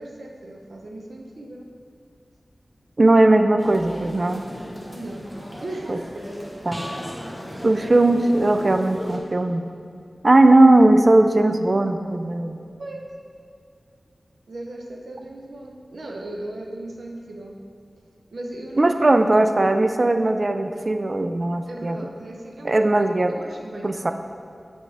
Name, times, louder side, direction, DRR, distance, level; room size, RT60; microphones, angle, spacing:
voice 1, 0.0-1.7 4.9-5.3 5.6-6.3 12.8-13.1 14.5-17.6 18.3-19.2 21.7-24.1, right 1 dB, 80° right, 1 dB, 0.7 m, -37 dB
voice 2, 3.0-4.4 5.9-6.0 6.7-6.8 7.6-9.7 10.2-12.6 18.8-22.0 22.6-23.3 23.8-24.1, right 2 dB, 45° right, 7 dB, 0.4 m, -18 dB
sound 1, 3.6-9.2, equal, 5° right, 1.2 m, -36 dB
7.7 x 4.7 x 3.4 m, 2.4 s
cardioid pair, 45°, 0 cm